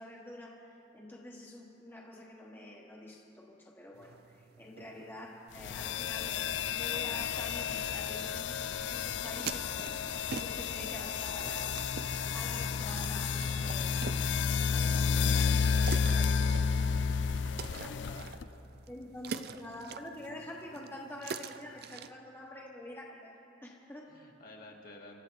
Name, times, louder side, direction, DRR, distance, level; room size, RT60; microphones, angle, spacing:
voice 1, 0.0-6.4 6.7-10.0 10.3-11.8 12.3-14.0 14.7-17.1 17.5-18.1 18.9-24.1, left 1 dB, 10° left, -2 dB, 1.3 m, -47 dB
sound 1, 3.9-22.1, right 5 dB, 55° right, 0.5 m, -46 dB
sound 2, 5.6-18.4, left 6 dB, 70° left, 0.4 m, -31 dB
sound 3, 10.1-17.8, right 1 dB, 15° right, 1.0 m, -54 dB
voice 2, 17.8-18.8 24.1-25.2, left 2 dB, 50° left, -1 dB, 1.8 m, -52 dB
26.0 x 13.5 x 4.0 m, 2.7 s
head